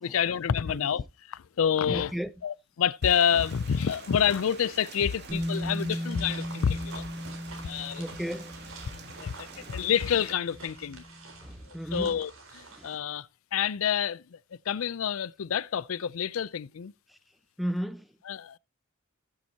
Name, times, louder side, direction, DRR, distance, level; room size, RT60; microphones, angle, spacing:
voice 1, 0.0-2.1 2.4-7.1 7.6-8.0 9.2-11.0 11.9-14.4 14.7-16.9 18.3-18.6, left 8 dB, 75° left, 0.4 m, -28 dB
voice 2, 1.9-2.3 8.0-8.5 9.5-9.8 11.4-12.2 12.7-12.9 17.1-17.2 17.6-18.1, equal, ahead, 0.5 m, -35 dB
Rain, 3.0-10.3, right 4 dB, 55° right, 2.4 m, -47 dB
Bass guitar, 5.3-11.3, equal, 35° right, 3.3 m, -37 dB
sound 1, 6.1-13.0, right 2 dB, 70° right, 4.1 m, -47 dB
15.0 x 7.5 x 2.8 m
head